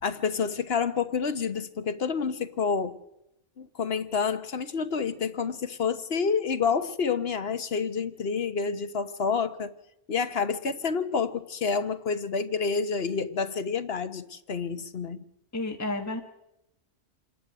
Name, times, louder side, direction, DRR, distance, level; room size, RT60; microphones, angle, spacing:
voice 1, 0.0-3.0 3.6-9.7 10.1-15.2, left 5 dB, 60° left, 1.3 m, -28 dB
voice 2, 15.5-16.2, left 2 dB, 15° left, 1.4 m, -31 dB
27.0 x 11.0 x 9.0 m
omnidirectional pair, 1.2 m